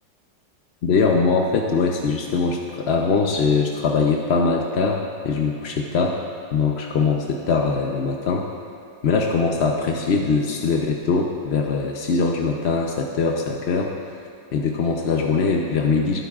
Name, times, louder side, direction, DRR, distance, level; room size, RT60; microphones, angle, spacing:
voice 1, 0.8-6.2 6.5-8.5 9.0-13.9 14.5-16.2, left 4 dB, 60° left, 1 dB, 0.6 m, -22 dB
19.0 x 9.4 x 2.4 m, 2.7 s
omnidirectional pair, 1.9 m